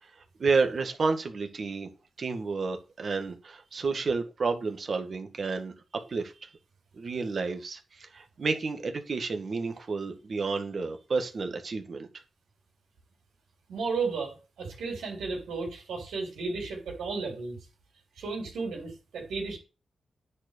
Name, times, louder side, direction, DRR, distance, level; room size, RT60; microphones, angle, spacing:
voice 1, 0.4-1.9 2.2-6.3 6.9-12.1, right 4 dB, 60° right, 1.8 m, -30 dB
voice 2, 13.7-17.6 18.2-19.6, right 4 dB, 90° right, 3.7 m, -34 dB
9.8 x 4.4 x 6.7 m
cardioid pair, 50°, 0 cm